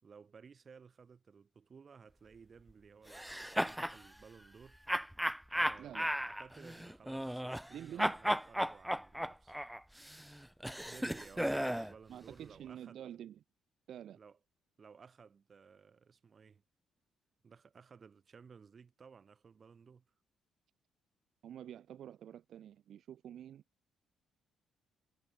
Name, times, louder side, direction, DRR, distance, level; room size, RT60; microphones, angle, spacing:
voice 1, 0.0-4.8 5.5-9.6 10.8-13.0 14.1-14.4 14.8-16.6 17.4-20.1, right 6 dB, 40° right, 3.0 m, -57 dB
sound 1, 3.1-4.0 4.9-7.7 8.0-11.9, equal, 5° right, 0.4 m, -35 dB
voice 2, 5.8-6.1 7.7-8.1 11.3-13.4 13.9-14.2 21.4-23.6, right 10 dB, 70° right, 1.6 m, -49 dB
cardioid pair, 90°, 0 cm